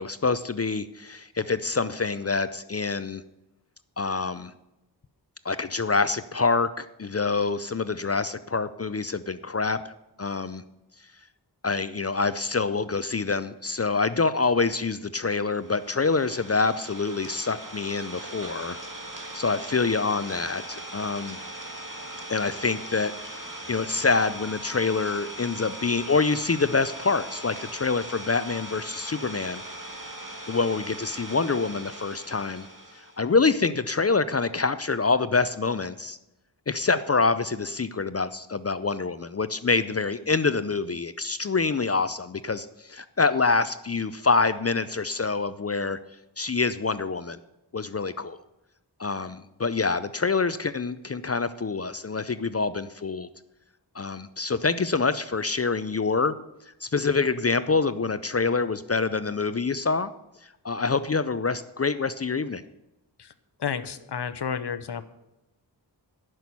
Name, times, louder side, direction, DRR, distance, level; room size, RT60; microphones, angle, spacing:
voice 1, 0.0-3.2 4.0-4.5 5.4-10.6 11.6-18.8 19.3-21.4 22.3-29.6 30.5-32.7 33.2-36.2 36.7-46.0 46.4-47.4 47.7-48.4 49.0-53.3 53.9-56.4 56.8-60.1 60.4-62.6, left 4 dB, 35° left, 14 dB, 0.5 m, -26 dB
Idling, 15.5-33.2, right 1 dB, 50° right, 1.9 m, -40 dB
voice 2, 63.6-65.1, left 7 dB, 70° left, 12 dB, 0.8 m, -31 dB
11.0 x 6.1 x 8.5 m, 0.95 s
wide cardioid pair, 70°, 42 cm